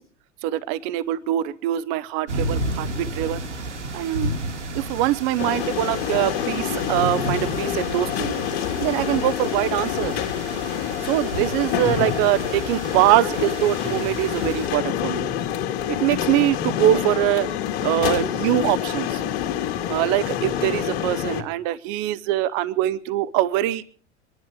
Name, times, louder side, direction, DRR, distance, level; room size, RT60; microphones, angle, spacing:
voice 1, 0.4-3.4 3.9-4.3 4.7-8.4 8.8-10.1 11.0-15.3 15.9-17.5 17.8-19.2 19.9-23.8, right 13 dB, 45° right, 18 dB, 0.9 m, -23 dB
sound 1, 2.3-14.7, right 1 dB, 75° right, 2.7 m, -32 dB
sound 2, 5.4-21.4, left 10 dB, 55° left, 2.4 m, -27 dB
25.0 x 11.5 x 4.7 m, 0.43 s
figure-of-eight pair, 85°, 35 cm